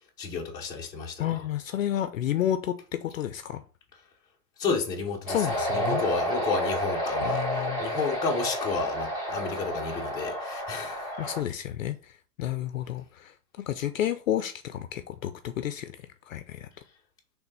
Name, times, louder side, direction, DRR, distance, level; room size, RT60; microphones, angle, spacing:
voice 1, 0.2-1.3 4.6-5.4 5.7-11.1, left 4 dB, 10° left, 0.9 m, -31 dB
voice 2, 1.2-3.6 5.3-6.0 7.2-7.8 11.2-15.9 16.3-16.7, left 11 dB, 55° left, 0.6 m, -31 dB
sound 1, 5.3-11.4, equal, 10° right, 1.8 m, -30 dB
6.1 x 3.4 x 5.3 m
hypercardioid pair, 160°, 49 cm